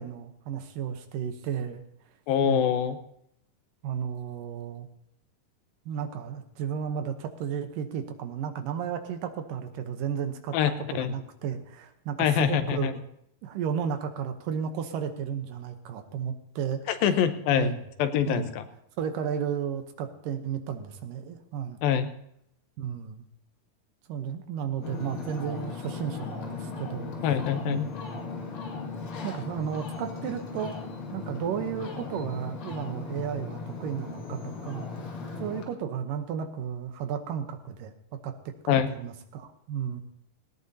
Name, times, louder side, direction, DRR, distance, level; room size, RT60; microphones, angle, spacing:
voice 1, 0.0-1.8 2.4-2.7 3.8-4.9 5.9-10.6 10.9-13.1 13.4-16.9 17.5-17.8 18.3-18.5 19.0-21.8 22.8-23.2 24.1-27.1 27.7-28.3 29.2-30.7 31.1-34.9 35.4-37.9 38.2-38.3 38.6-40.0, right 8 dB, 75° right, 7 dB, 2.5 m, -33 dB
voice 2, 2.3-3.0 10.5-10.7 11.0-11.1 12.2-12.9 17.0-17.7 18.0-18.6 21.8-22.1 27.2-27.9 38.7-38.9, left 9 dB, 85° left, 8 dB, 2.7 m, -24 dB
Ocean, 24.8-35.6, left 4 dB, 65° left, 3.6 m, -37 dB
18.5 x 17.5 x 2.8 m, 0.74 s
omnidirectional pair, 4.1 m